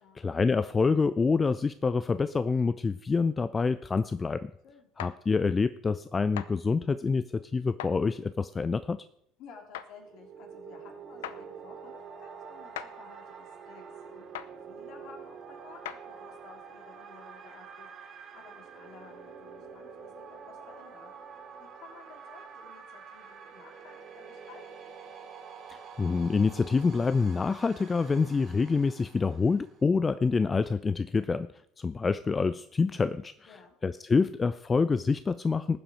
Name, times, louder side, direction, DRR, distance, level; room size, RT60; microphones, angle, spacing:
voice 1, 0.0-4.5 5.0-9.1 25.7-31.5 31.8-33.6 33.8-35.8, left 4 dB, 25° left, 15 dB, 0.4 m, -27 dB
sound 1, 5.0-5.2 6.4-6.5 7.8-8.0 9.7-9.9 11.2-11.4 12.8-12.9 14.3-14.5 15.8-16.0, left 11 dB, 70° left, 0.6 m, -38 dB
voice 2, 9.4-14.3 14.7-21.1 21.6-24.9 33.5-33.7, left 6 dB, 55° left, 3 dB, 3.0 m, -54 dB
sound 2, 9.9-29.8, right 6 dB, 45° right, 2.7 m, -47 dB
19.0 x 7.6 x 4.9 m, 0.74 s
figure-of-eight pair, 65°, 0 cm